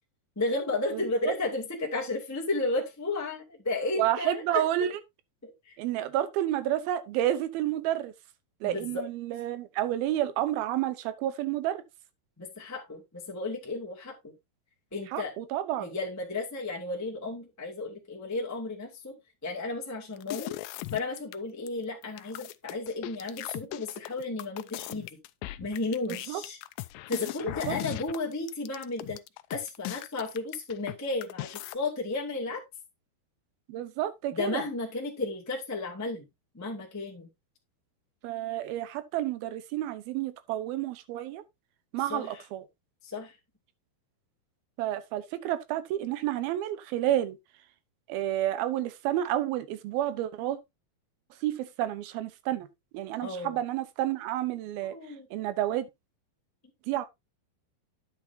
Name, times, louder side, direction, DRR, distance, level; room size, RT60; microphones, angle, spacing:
voice 1, 0.3-4.9 5.4-5.8 8.6-9.0 12.4-14.3 14.9-15.3 15.8-19.2 19.4-20.5 20.9-25.1 25.6-26.6 27.1-29.2 29.5-32.6 34.3-36.2 36.5-37.3 42.1-42.3 43.0-43.3 53.2-53.5 54.8-55.3, left 3 dB, 5° left, 1.3 m, -33 dB
voice 2, 0.9-1.3 4.0-5.0 5.8-8.1 8.6-11.8 15.1-15.9 26.1-26.4 27.4-27.8 33.7-34.6 38.2-41.4 41.9-42.7 44.8-47.4 48.1-50.6 51.3-52.7 52.9-55.9 56.8-57.1, right 12 dB, 80° right, 2.7 m, -30 dB
sound 1, 20.2-21.4 21.7-21.8 22.0-30.9 31.2-31.8, left 18 dB, 80° left, 2.2 m, -38 dB
10.5 x 7.5 x 2.7 m
omnidirectional pair, 4.4 m